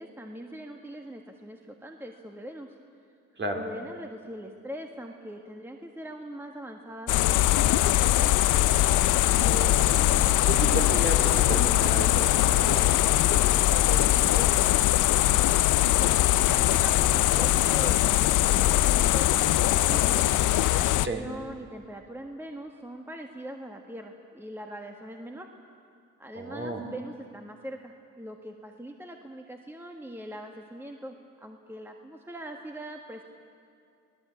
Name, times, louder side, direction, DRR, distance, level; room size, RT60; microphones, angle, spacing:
voice 1, 0.0-2.7 3.5-8.4 15.8-20.4 20.7-25.5 26.2-33.2, right 1 dB, 5° right, 3 dB, 1.6 m, -42 dB
sound 1, 7.1-21.1, left 14 dB, 80° left, 0.7 m, -22 dB
voice 2, 9.4-14.8 21.0-21.2 26.3-26.9, right 2 dB, 40° right, 3 dB, 3.6 m, -34 dB
24.5 x 18.0 x 8.5 m, 2.4 s
cardioid pair, 90°, 30 cm